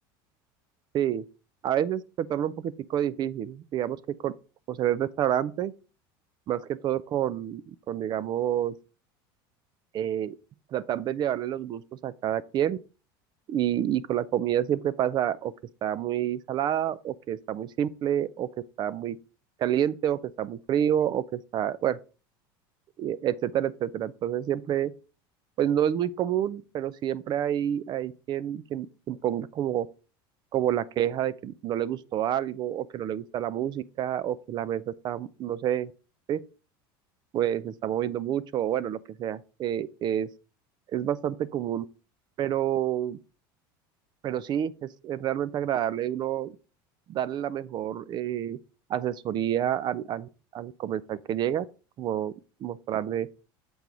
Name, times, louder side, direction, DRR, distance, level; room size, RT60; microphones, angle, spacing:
voice 1, 0.9-1.3 1.6-4.3 4.7-5.7 6.5-8.8 9.9-10.4 10.7-12.8 13.5-15.5 15.8-18.5 18.8-19.2 19.6-22.0 23.0-24.9 25.6-29.9 30.5-35.9 36.3-36.4 37.3-40.3 40.9-41.9 42.4-43.2 44.2-46.5 47.1-48.6 48.9-51.7 52.0-52.3 52.6-53.3, right 10 dB, 40° right, 0.4 m, -28 dB
6.9 x 4.6 x 3.8 m
supercardioid pair, 120°, 12 cm